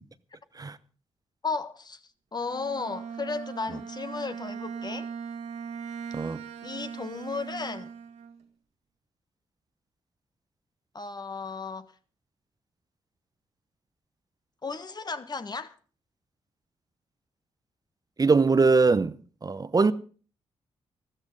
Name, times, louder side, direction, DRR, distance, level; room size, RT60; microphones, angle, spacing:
voice 1, 1.4-2.0 2.3-5.1 6.6-7.9 10.9-11.9 14.6-15.7, left 4 dB, 40° left, 1.4 m, -34 dB
Bowed string instrument, 2.4-8.5, right 6 dB, 75° right, 1.7 m, -39 dB
voice 2, 18.2-19.1 19.4-19.9, right 4 dB, 35° right, 0.9 m, -21 dB
13.5 x 13.5 x 5.3 m
supercardioid pair, 50°, 11 cm